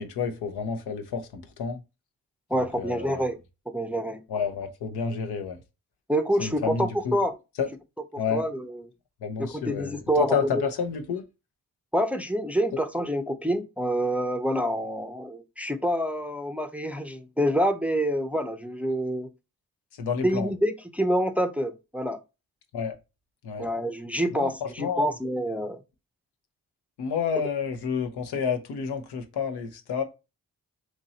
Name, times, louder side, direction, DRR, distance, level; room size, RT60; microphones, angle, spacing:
voice 1, 0.0-1.8 2.5-3.2 4.3-5.6 6.4-7.2 7.6-7.7 8.2-8.4 9.2-11.2 20.0-20.5 22.7-23.0 23.4-23.7 24.3-25.1 27.0-30.0, left 6 dB, 80° left, 0.8 m, -30 dB
voice 2, 2.5-3.4 3.7-4.2 6.1-7.4 8.3-8.8 9.4-10.6 11.9-19.3 20.2-22.2 23.6-25.8, equal, 5° right, 0.5 m, -27 dB
3.0 x 2.6 x 4.0 m
supercardioid pair, 50°, 39 cm